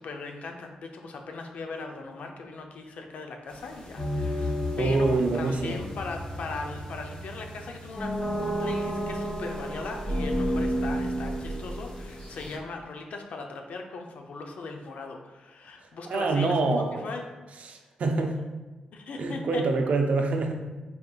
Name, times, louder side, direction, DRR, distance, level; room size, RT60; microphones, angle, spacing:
voice 1, 0.0-8.1 8.6-16.6 16.9-17.2 18.2-18.4 18.9-19.6, left 3 dB, 75° left, 3 dB, 0.5 m, -38 dB
sound 1, 3.5-12.6, equal, 45° left, 1.1 m, -32 dB
voice 2, 4.8-5.8 16.0-17.0 17.6-18.4 19.2-20.5, right 3 dB, 65° right, 3 dB, 0.5 m, -26 dB
4.2 x 3.7 x 2.4 m, 1.2 s
supercardioid pair, 55°, 2 cm